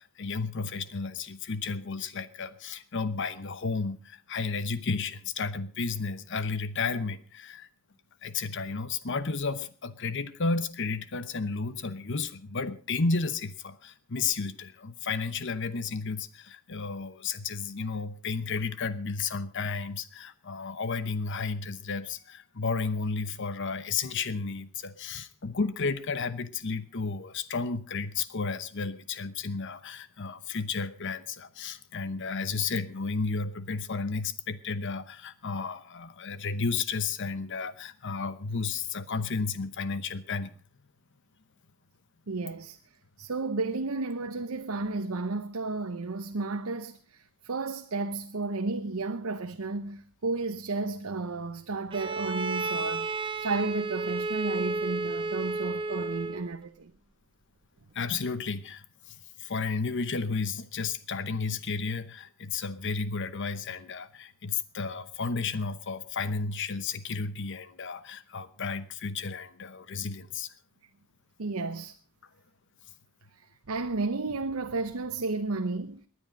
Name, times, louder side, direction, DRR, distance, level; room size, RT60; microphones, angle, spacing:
voice 1, 0.0-7.7 8.2-40.5 57.9-70.5, left 4 dB, 55° left, 0.9 m, -32 dB
voice 2, 42.3-42.8 43.2-56.9 71.4-72.0 73.4-76.0, right 3 dB, 75° right, 0.8 m, -33 dB
Bowed string instrument, 51.9-56.5, right 3 dB, 25° right, 0.8 m, -32 dB
19.5 x 10.0 x 5.2 m
head